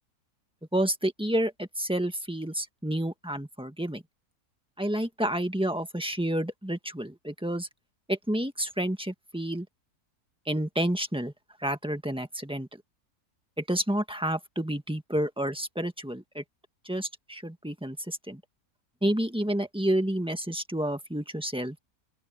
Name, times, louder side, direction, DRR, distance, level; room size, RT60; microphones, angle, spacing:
voice 1, 0.7-4.0 4.8-7.7 8.1-9.6 10.5-11.3 11.6-12.7 13.7-16.4 16.8-18.4 19.0-21.8, right 1 dB, 5° right, 1.5 m, -29 dB
open air
omnidirectional pair, 1.6 m